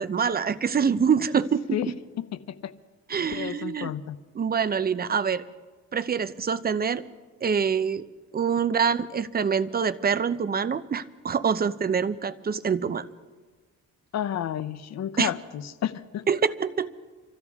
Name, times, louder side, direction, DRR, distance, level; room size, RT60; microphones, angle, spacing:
voice 1, 0.0-1.8 3.1-3.9 4.3-5.4 5.9-7.0 7.4-8.0 8.3-13.1 15.2-15.3 16.3-16.9, right 6 dB, 30° right, 13 dB, 0.7 m, -25 dB
voice 2, 3.3-4.2 14.1-16.2, left 10 dB, 60° left, 13 dB, 0.8 m, -31 dB
26.0 x 13.5 x 3.6 m, 1.3 s
cardioid pair, 90°, 30 cm